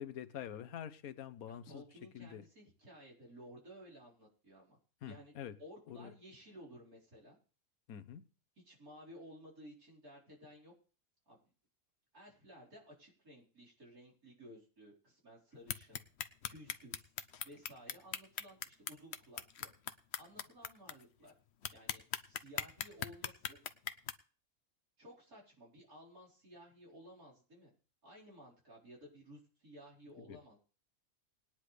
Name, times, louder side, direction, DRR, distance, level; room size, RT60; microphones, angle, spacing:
voice 1, 0.0-1.8 2.1-2.5 5.0-5.6 5.9-6.1 7.9-8.3 30.2-30.4, left 9 dB, 85° left, 12 dB, 1.3 m, -46 dB
voice 2, 1.5-4.8 5.1-5.3 5.6-7.4 8.6-10.7 11.3-11.4 12.1-16.0 16.5-17.1 17.4-19.7 20.2-21.3 21.7-23.6 25.0-27.7 28.0-30.6, equal, 90° right, -5 dB, 5.0 m, -56 dB
sound 1, 15.7-20.9 21.3-21.4 21.6-24.1, left 8 dB, 55° left, 0.9 m, -39 dB
20.0 x 10.0 x 3.3 m, 0.39 s
omnidirectional pair, 1.5 m